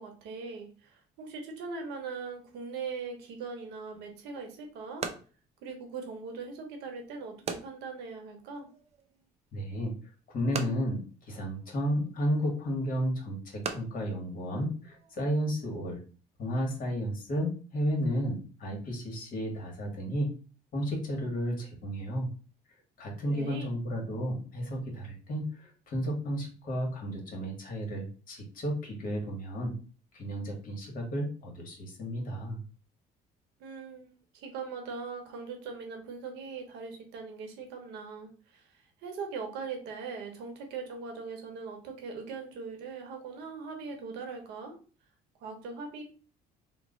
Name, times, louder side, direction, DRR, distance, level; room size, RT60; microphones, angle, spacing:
voice 1, 0.0-5.1 5.6-8.7 23.3-23.7 33.6-44.8 45.4-46.0, right 4 dB, 90° right, 4 dB, 0.9 m, -40 dB
sound 1, 3.9-15.3, right 6 dB, 40° right, 0.5 m, -44 dB
voice 2, 9.5-9.9 10.3-16.0 16.4-20.3 20.7-22.3 23.0-29.8 30.1-32.6, equal, 55° left, 1 dB, 1.2 m, -32 dB
3.0 x 2.0 x 3.7 m, 0.38 s
cardioid pair, 110°, 17 cm